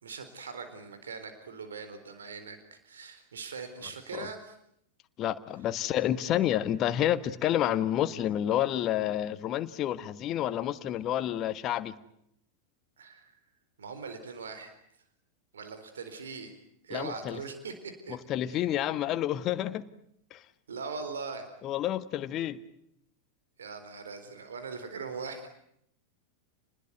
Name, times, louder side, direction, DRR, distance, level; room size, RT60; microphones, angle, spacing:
voice 1, 0.0-4.6 13.0-13.4 13.8-14.7 15.5-16.5 16.8-18.2 18.5-18.6 20.7-21.5 23.6-25.5, right 5 dB, 70° right, 8 dB, 4.0 m, -41 dB
voice 2, 5.2-11.9 16.9-17.4 18.1-19.8 20.3-20.4 21.6-22.6, left 11 dB, 35° left, 12 dB, 1.4 m, -29 dB
28.5 x 20.5 x 9.4 m, 0.74 s
figure-of-eight pair, 90°, 0 cm